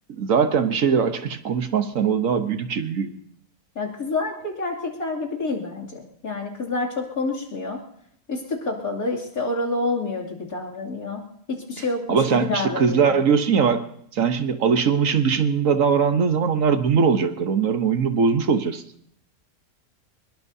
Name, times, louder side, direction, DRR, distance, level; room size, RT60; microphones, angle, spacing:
voice 1, 0.1-3.1 12.1-13.8 14.1-18.8, right 6 dB, 65° right, 8 dB, 1.4 m, -21 dB
voice 2, 3.7-7.8 8.3-11.2 11.5-13.1, left 3 dB, 75° left, -3 dB, 3.2 m, -28 dB
23.5 x 21.5 x 2.7 m, 0.68 s
omnidirectional pair, 1.5 m